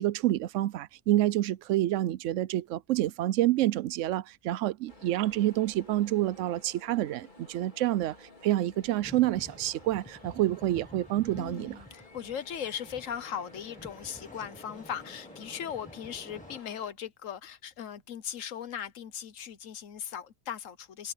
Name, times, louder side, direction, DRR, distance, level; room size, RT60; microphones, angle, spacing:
voice 1, 0.0-11.8, right 14 dB, 75° right, 0.9 m, -28 dB
sound 1, 4.9-16.9, left 1 dB, 35° left, 4.0 m, -54 dB
sound 2, 9.0-16.6, left 1 dB, 5° left, 1.1 m, -50 dB
voice 2, 11.4-21.1, left 9 dB, 85° left, 1.4 m, -38 dB
omnidirectional pair, 1.3 m